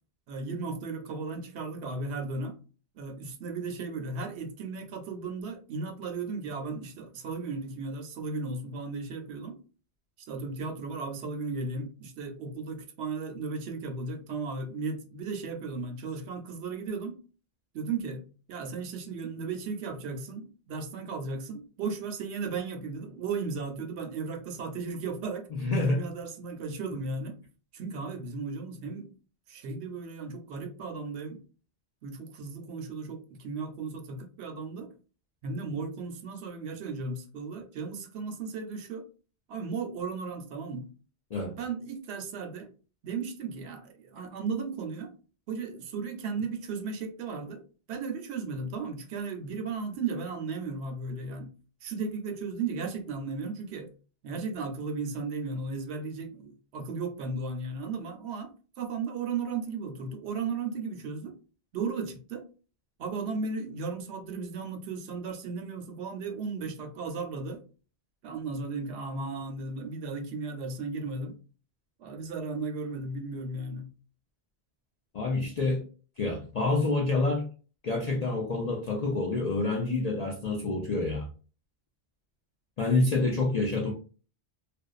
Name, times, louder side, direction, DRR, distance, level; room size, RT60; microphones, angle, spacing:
voice 1, 0.3-2.6 3.0-9.6 10.3-17.2 17.7-18.2 18.5-25.5 25.8-27.4 27.7-29.1 29.5-31.4 32.0-34.9 35.4-39.0 39.5-40.9 41.6-42.7 43.0-45.1 45.5-47.6 47.9-51.5 51.8-53.9 54.2-58.5 58.8-61.4 61.7-62.4 63.0-67.6 68.2-71.4 72.0-73.9, right 4 dB, 75° right, 0.8 m, -35 dB
voice 2, 25.5-26.0 41.3-41.6 75.1-75.9 76.2-77.5 77.8-81.3 82.8-83.9, left 3 dB, 60° left, 0.4 m, -27 dB
2.5 x 2.1 x 2.3 m
omnidirectional pair, 1.1 m